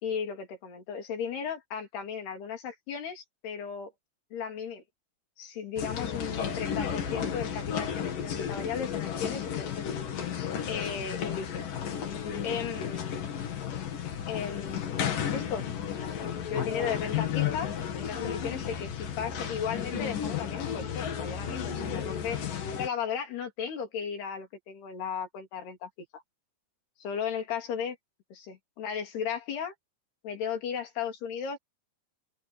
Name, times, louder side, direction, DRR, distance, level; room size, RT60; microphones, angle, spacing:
voice 1, 0.0-3.9 4.3-4.8 5.4-10.0 10.7-11.6 12.4-13.2 14.3-15.0 15.3-15.7 16.5-22.4 22.8-26.2 27.0-28.0 28.3-29.7 30.2-31.6, left 7 dB, 75° left, 5.5 m, -35 dB
sound 1, 5.8-22.9, left 8 dB, 55° left, 3.8 m, -33 dB
open air
omnidirectional pair, 4.7 m